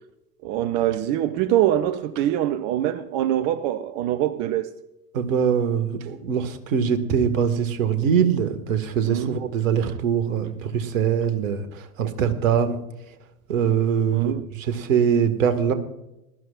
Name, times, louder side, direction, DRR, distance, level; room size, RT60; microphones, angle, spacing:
voice 1, 0.4-4.7 9.1-9.4 14.1-14.5, right 12 dB, 25° right, 0.5 m, -24 dB
voice 2, 5.1-12.8 13.5-15.7, right 7 dB, 55° right, 1.7 m, -23 dB
20.5 x 13.0 x 2.4 m
figure-of-eight pair, 90°, 47 cm